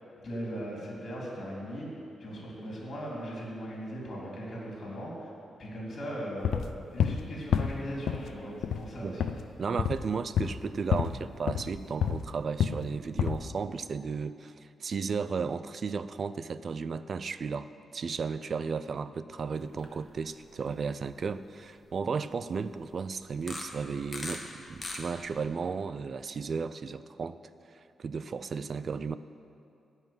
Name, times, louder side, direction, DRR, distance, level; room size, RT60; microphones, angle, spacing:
voice 1, 0.2-5.3 5.6-6.6 6.9-9.3, equal, 45° left, -4 dB, 3.5 m, -38 dB
sound 1, 6.4-7.2 7.5-8.3 8.6-8.9 9.2-9.4 9.8-10.1 10.4-10.7 10.9-11.2 11.5-12.3 12.6-12.9 13.2-13.5, left 8 dB, 85° left, 0.5 m, -28 dB
voice 2, 9.6-27.4 27.7-29.2, right 5 dB, 40° right, 13 dB, 0.4 m, -34 dB
sound 2, 19.6-19.9 20.3-20.5 21.1-21.2 23.4-24.4 24.7-25.4, left 2 dB, 20° left, 1.3 m, -39 dB
13.5 x 5.7 x 9.5 m, 2.6 s
wide cardioid pair, 165°, 0 cm